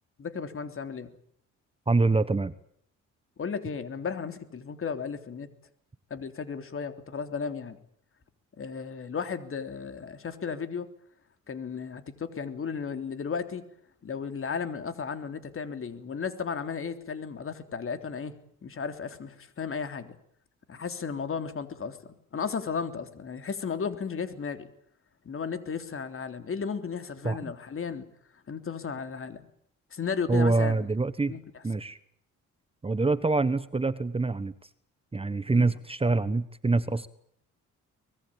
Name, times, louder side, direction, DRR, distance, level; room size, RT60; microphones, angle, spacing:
voice 1, 0.2-1.1 3.4-5.5 6.1-7.8 8.6-10.9 11.5-13.6 14.0-18.3 18.6-20.2 20.7-24.7 25.3-28.1 28.5-29.5 29.9-30.9 31.3-31.4 35.5-35.7, left 6 dB, 45° left, 9 dB, 3.4 m, -34 dB
voice 2, 1.9-2.5 27.2-27.5 30.3-31.4 31.6-32.0 32.8-34.5 35.1-37.1, right 3 dB, 20° right, 14 dB, 1.2 m, -25 dB
24.5 x 20.5 x 8.9 m, 0.67 s
cardioid pair, 90°, 30 cm